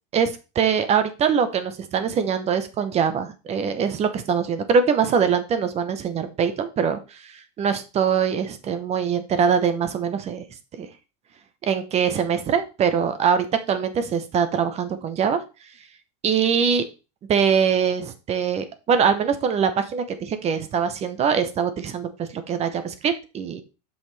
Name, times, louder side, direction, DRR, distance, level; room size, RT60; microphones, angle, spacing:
voice 1, 0.1-10.5 10.8-10.9 11.6-15.4 16.2-16.8 17.3-23.6, right 7 dB, 30° right, 10 dB, 0.9 m, -23 dB
7.0 x 5.7 x 3.3 m, 0.30 s
supercardioid pair, 140°, 21 cm